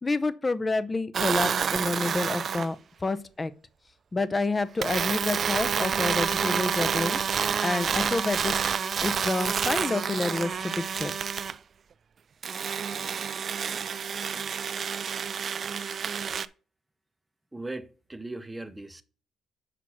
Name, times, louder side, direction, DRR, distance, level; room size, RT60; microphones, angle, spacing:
voice 1, 0.0-2.8 3.0-3.5 4.1-7.2 7.6-11.1, left 3 dB, 25° left, 0.6 m, -29 dB
sound 1, 1.1-2.7 4.8-11.6 12.4-16.5, right 7 dB, 50° right, 0.4 m, -28 dB
voice 2, 17.5-19.0, right 2 dB, 10° right, 0.7 m, -38 dB
5.9 x 4.7 x 5.9 m
cardioid pair, 90°, 0 cm